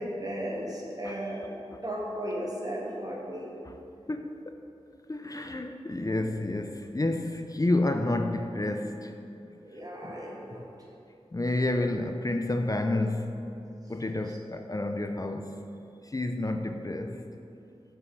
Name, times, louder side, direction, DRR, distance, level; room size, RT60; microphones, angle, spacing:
voice 1, 0.0-1.5 1.8-3.6 9.6-10.7 14.3-14.4, equal, 35° right, -3 dB, 1.8 m, -35 dB
voice 2, 4.1-4.6 5.1-9.1 10.0-10.2 11.3-13.5 13.9-15.7 16.1-17.2, left 2 dB, 30° left, 6 dB, 0.5 m, -30 dB
7.8 x 5.6 x 6.6 m, 2.7 s
wide cardioid pair, 60°, 11 cm